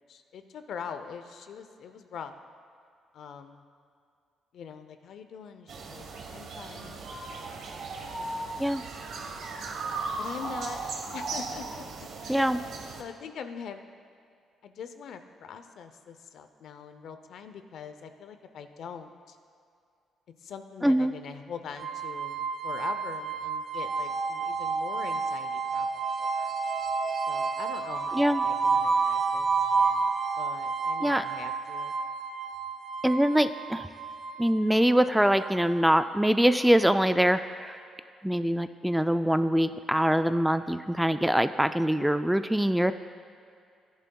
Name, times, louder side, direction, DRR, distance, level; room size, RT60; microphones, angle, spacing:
voice 1, 0.1-2.3 3.1-3.6 4.5-7.0 8.2-8.7 9.0-9.3 10.2-11.7 12.2-12.6 13.0-13.9 14.6-19.4 20.4-26.5 27.3-29.5 30.4-31.9, left 7 dB, 70° left, 8 dB, 0.6 m, -43 dB
sound 1, 5.7-13.0, right 3 dB, 70° right, 1.2 m, -37 dB
voice 2, 12.3-12.6 20.8-21.1 28.1-28.4 31.0-31.3 33.0-33.9 34.4-37.8 38.2-42.9, equal, 5° right, 10 dB, 0.3 m, -24 dB
sound 2, 21.8-36.7, right 4 dB, 45° right, 0.6 m, -30 dB
14.0 x 10.5 x 2.3 m, 2.4 s
cardioid pair, 90°, 0 cm